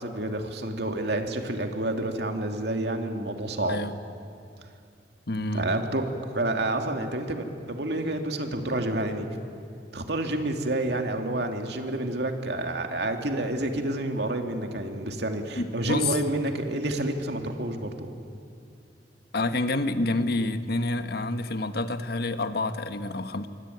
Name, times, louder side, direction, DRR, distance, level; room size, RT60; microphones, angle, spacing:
voice 1, 0.0-3.8 5.5-9.3 9.9-18.1, right 1 dB, 70° right, 4 dB, 2.6 m, -29 dB
voice 2, 5.3-5.6 15.6-16.2 19.3-23.5, left 2 dB, 65° left, 9 dB, 1.4 m, -28 dB
26.5 x 24.0 x 9.4 m, 2.4 s
head